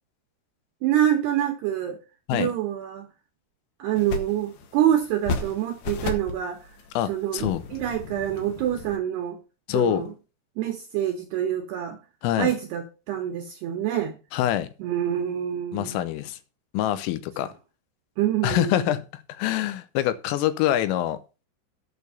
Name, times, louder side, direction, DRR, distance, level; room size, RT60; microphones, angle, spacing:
voice 1, 0.8-2.0 2.3-3.1 3.8-6.7 7.1-9.4 9.7-10.1 10.6-12.0 12.4-14.2 14.8-16.1 18.2-18.9, right 11 dB, 80° right, 2.4 m, -26 dB
sound 1, 3.9-9.0, left 3 dB, 65° left, 3.4 m, -35 dB
voice 2, 7.0-7.6 9.7-10.1 12.2-12.5 14.3-14.7 15.7-16.4 16.7-17.5 18.4-21.2, left 13 dB, 80° left, 3.5 m, -25 dB
8.7 x 6.4 x 6.9 m
omnidirectional pair, 5.9 m